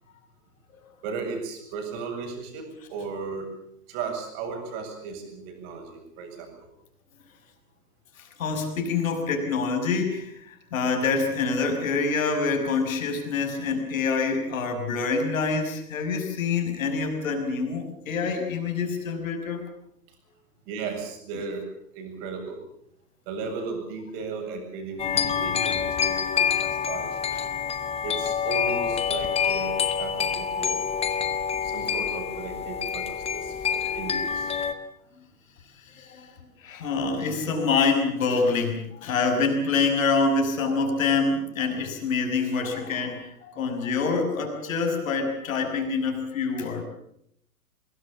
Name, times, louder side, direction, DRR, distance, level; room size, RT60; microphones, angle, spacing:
voice 1, 1.0-3.5 3.9-6.7 20.7-21.7 21.9-22.6 23.3-27.3 28.0-30.8 31.6-34.5, right 5 dB, 40° right, 3 dB, 7.6 m, -35 dB
voice 2, 8.2-19.6 25.5-25.6 27.3-27.4 31.1-31.2 33.8-34.0 35.8-36.3 36.6-46.8, left 4 dB, 55° left, 5 dB, 5.9 m, -26 dB
sound 1, 25.0-34.7, left 7 dB, 15° left, 1.4 m, -27 dB
23.5 x 22.0 x 7.3 m, 0.72 s
figure-of-eight pair, 115°, 47 cm